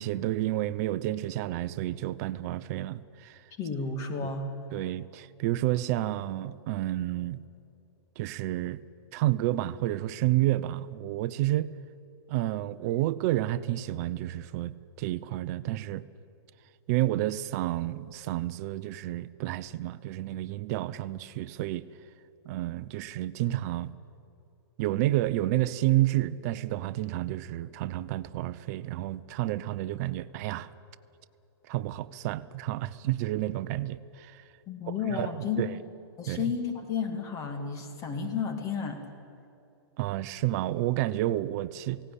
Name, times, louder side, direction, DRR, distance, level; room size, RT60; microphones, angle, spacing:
voice 1, 0.0-3.4 4.2-4.3 4.7-7.4 8.2-8.8 9.1-11.7 12.3-16.0 16.9-21.8 22.4-23.9 24.8-30.7 31.7-34.4 34.9-35.8 36.3-36.5 40.0-42.0, right 15 dB, 40° right, 0.7 m, -30 dB
voice 2, 3.6-4.4 34.7-35.7 36.2-39.0, left 6 dB, 25° left, 2.2 m, -32 dB
18.0 x 17.0 x 10.0 m
hypercardioid pair, 150°, 14 cm